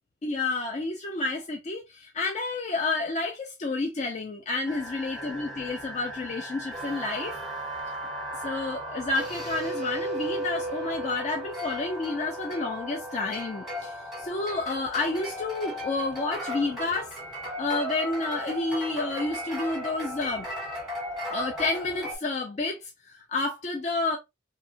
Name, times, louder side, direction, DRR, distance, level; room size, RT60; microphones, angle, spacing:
voice 1, 0.2-7.4 8.4-17.1 17.6-20.5 21.3-24.2, left 3 dB, 40° left, 0.4 m, -30 dB
sound 1, 4.7-22.2, right 1 dB, ahead, 1.1 m, -36 dB
2.8 x 2.2 x 2.6 m
head